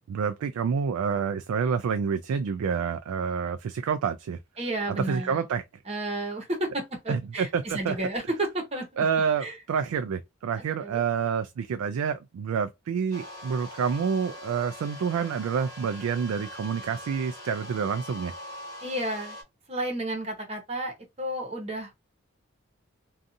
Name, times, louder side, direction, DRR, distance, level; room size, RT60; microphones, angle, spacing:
voice 1, 0.1-4.4 4.9-5.6 7.1-8.0 9.0-18.3, right 6 dB, 90° right, 0.3 m, -28 dB
voice 2, 4.6-5.4 5.9-8.9 9.4-9.5 10.8-11.0 18.8-19.4 19.7-22.0, right 1 dB, 30° right, 0.9 m, -32 dB
sound 1, 13.1-19.4, left 1 dB, 15° left, 1.1 m, -42 dB
2.6 x 2.3 x 2.5 m
head